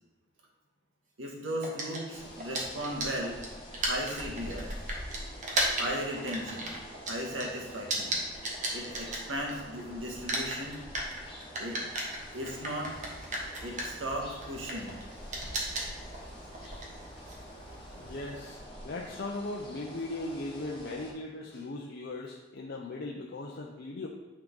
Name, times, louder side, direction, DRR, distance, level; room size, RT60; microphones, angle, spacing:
voice 1, 1.2-3.4 3.8-4.7 5.8-6.7 7.1-8.2 8.7-10.8 11.6-11.8 12.3-13.0 13.6-14.9, equal, 75° right, 0 dB, 1.5 m, -36 dB
sound 1, 1.6-9.8 10.1-18.3, right 1 dB, 40° right, 1.3 m, -36 dB
sound 2, 2.1-21.1, equal, 25° left, 1.5 m, -46 dB
voice 2, 17.9-24.1, left 2 dB, 55° left, -1 dB, 0.6 m, -38 dB
8.9 x 3.8 x 3.8 m, 1.2 s
head